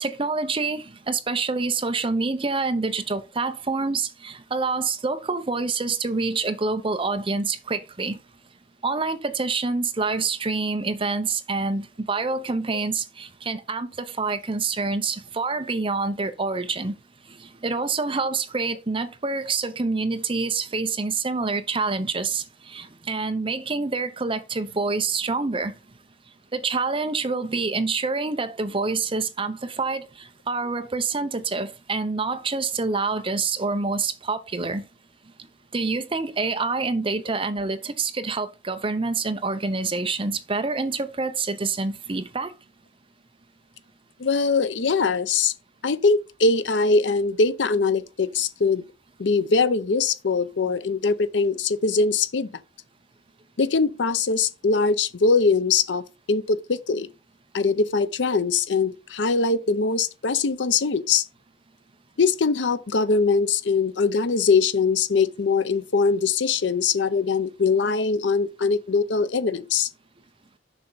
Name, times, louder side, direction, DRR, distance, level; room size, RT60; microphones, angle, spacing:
voice 1, 0.0-8.2 8.8-16.9 17.3-25.7 26.5-34.9 35.7-42.5, right 4 dB, 30° right, 0.7 m, -27 dB
voice 2, 44.2-45.5 45.8-48.8 49.2-52.5 53.6-57.1 57.5-61.2 62.2-69.9, left 4 dB, 80° left, 0.6 m, -22 dB
6.8 x 5.8 x 3.9 m
head